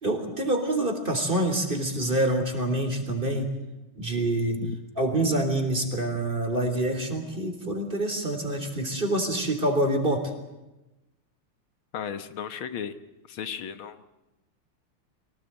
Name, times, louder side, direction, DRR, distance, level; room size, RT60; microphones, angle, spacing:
voice 1, 0.0-3.5 4.0-4.6 5.0-10.3, right 1 dB, 25° right, 6 dB, 3.8 m, -26 dB
voice 2, 11.9-12.9 13.3-14.0, left 8 dB, 75° left, 11 dB, 2.0 m, -35 dB
24.5 x 18.0 x 8.9 m, 0.99 s
omnidirectional pair, 2.3 m